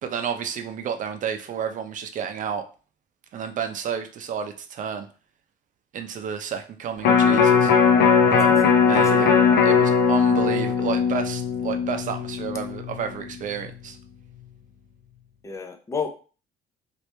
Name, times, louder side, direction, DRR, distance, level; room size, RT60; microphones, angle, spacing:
voice 1, 0.0-2.6 3.3-5.1 5.9-7.7 8.3-8.6 8.8-9.3 9.6-14.0, right 7 dB, 50° right, 6 dB, 0.6 m, -31 dB
Electric guitar, 7.0-13.3 13.6-13.7, left 6 dB, 70° left, 0.6 m, -19 dB
voice 2, 8.5-9.5 15.4-16.1, left 5 dB, 20° left, 6 dB, 0.5 m, -32 dB
3.0 x 2.6 x 3.2 m, 0.37 s
cardioid pair, 110°, 17 cm